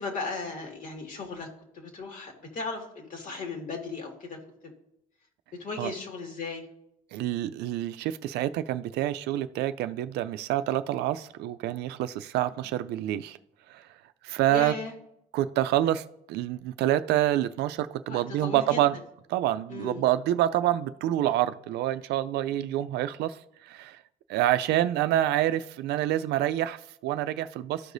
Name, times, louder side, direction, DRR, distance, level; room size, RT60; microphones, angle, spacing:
voice 1, 0.0-1.5 1.7-4.4 5.6-6.7 14.5-14.9 18.1-18.8 19.7-20.0, left 3 dB, 50° left, 2.0 m, -36 dB
voice 2, 7.1-13.4 13.7-13.8 14.2-14.7 15.3-19.0 19.3-23.4 23.6-24.0 24.3-27.9, right 13 dB, 80° right, 0.4 m, -27 dB
13.5 x 4.8 x 2.6 m
cardioid pair, 110°, 17 cm